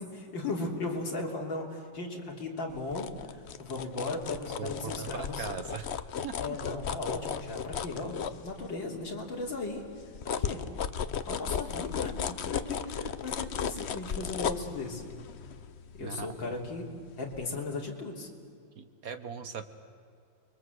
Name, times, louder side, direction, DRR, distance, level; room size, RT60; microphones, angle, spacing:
voice 1, 0.0-5.5 6.4-9.8 10.2-10.6 11.3-15.0 15.9-16.9 17.2-18.3, left 3 dB, 75° left, -1 dB, 4.0 m, -37 dB
sound 1, 2.7-9.0 9.4-17.0 17.3-17.5, left 7 dB, 55° left, 0.7 m, -36 dB
voice 2, 4.6-6.6 13.0-13.1 16.0-16.6 18.8-19.6, right 6 dB, 50° right, 9 dB, 1.6 m, -40 dB
29.5 x 22.5 x 8.0 m, 2.3 s
omnidirectional pair, 2.1 m